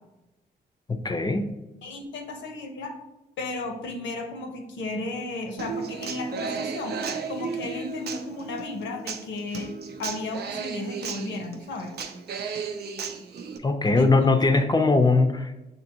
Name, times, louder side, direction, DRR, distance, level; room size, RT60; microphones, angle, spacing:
voice 1, 0.9-1.6 13.6-15.7, left 3 dB, 20° left, 6 dB, 0.5 m, -21 dB
voice 2, 1.8-3.0 3.4-7.0 7.3-9.7 10.0-11.9 14.0-14.3, left 2 dB, 85° left, 4 dB, 0.7 m, -34 dB
Human voice / Acoustic guitar, 5.6-13.6, right 5 dB, 60° right, 0.5 m, -34 dB
6.0 x 2.8 x 2.8 m, 0.98 s
cardioid pair, 65°, 19 cm